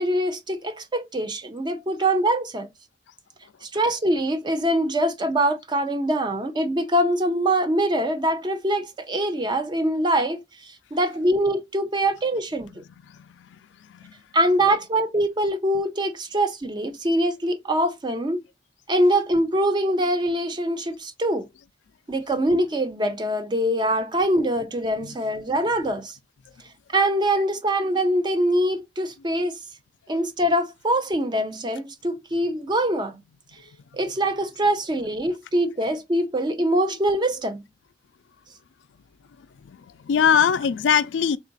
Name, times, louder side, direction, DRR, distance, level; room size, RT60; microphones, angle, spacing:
voice 1, 0.0-2.7 3.6-10.4 10.9-12.8 14.3-18.4 18.9-21.5 22.1-26.2 26.9-29.6 30.1-33.2 33.9-37.6, right 1 dB, 25° right, 0.5 m, -23 dB
voice 2, 40.0-41.4, left 7 dB, 85° left, 0.4 m, -21 dB
3.7 x 2.4 x 3.9 m
head